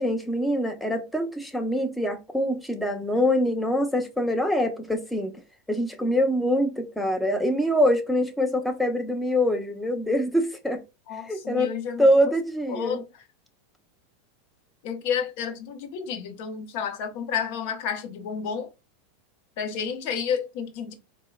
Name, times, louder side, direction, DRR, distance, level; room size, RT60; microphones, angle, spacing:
voice 1, 0.0-5.3 5.7-10.8 11.3-11.7 12.0-13.0, equal, 5° left, 0.7 m, -24 dB
voice 2, 11.1-12.1 12.7-13.1 14.8-18.7 19.6-20.9, left 7 dB, 60° left, 0.7 m, -31 dB
4.4 x 2.1 x 2.4 m
hypercardioid pair, 90°, 0 cm